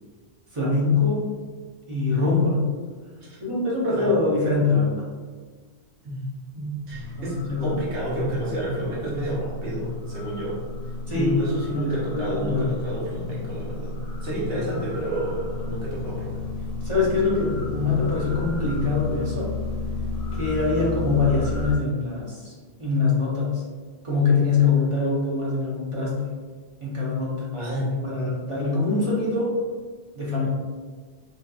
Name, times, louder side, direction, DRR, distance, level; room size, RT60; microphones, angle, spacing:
voice 1, 0.5-1.3 1.9-2.7 3.4-5.1 7.2-7.8 11.1-11.4 11.7-12.7 14.5-14.7 16.8-19.5 20.3-22.5 22.8-23.6 24.0-26.3 26.8-27.5 28.0-29.5 30.1-30.5, left 4 dB, 30° right, -6 dB, 0.8 m, -23 dB
voice 2, 6.5-10.6 11.1-14.0 14.2-16.4 27.5-28.3, right 1 dB, 65° right, -7 dB, 1.2 m, -30 dB
sound 1, 6.9-21.8, left 3 dB, 65° left, 0.8 m, -32 dB
2.8 x 2.7 x 2.4 m, 1.5 s
omnidirectional pair, 1.1 m